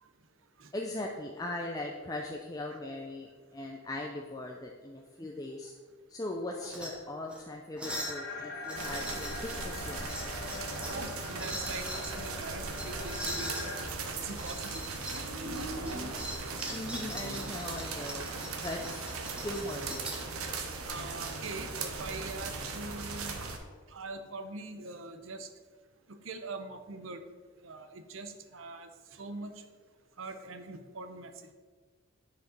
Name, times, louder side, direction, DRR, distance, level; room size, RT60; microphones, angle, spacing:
voice 1, 0.7-5.7 6.1-10.1 16.7-20.1, left 1 dB, 15° left, 0 dB, 0.5 m, -39 dB
sound 1, 6.5-6.9 7.3-7.4 7.8-8.2 8.6-9.6 10.0-11.0 11.3-12.1 12.7-13.7 14.3-15.2 15.5-20.3 21.2-21.8, equal, 5° right, 1.1 m, -42 dB
sound 2, 7.8-13.8, left 3 dB, 45° left, 1.6 m, -42 dB
sound 3, 8.7-23.6, right 3 dB, 85° right, 1.0 m, -38 dB
voice 2, 10.9-14.8 16.5-16.6 17.6-17.7 20.8-23.4 23.9-25.5 26.1-27.2 27.6-29.6 30.2-31.5, right 3 dB, 65° right, 8 dB, 0.8 m, -43 dB
9.1 x 5.1 x 5.2 m, 1.5 s
head